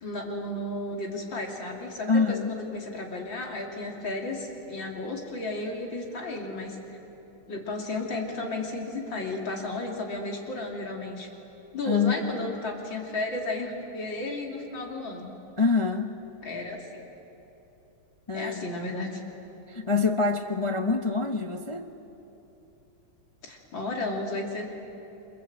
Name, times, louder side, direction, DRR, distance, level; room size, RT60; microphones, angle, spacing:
voice 1, 0.0-7.0 7.5-11.3 11.7-15.3 16.4-17.0 18.3-19.2 23.4-24.7, left 2 dB, 65° left, 0 dB, 3.5 m, -33 dB
voice 2, 2.1-2.5 11.9-12.5 15.6-16.1 18.3-18.7 19.7-21.9, left 4 dB, 30° left, 3 dB, 0.6 m, -26 dB
29.5 x 25.0 x 8.0 m, 3.0 s
omnidirectional pair, 2.3 m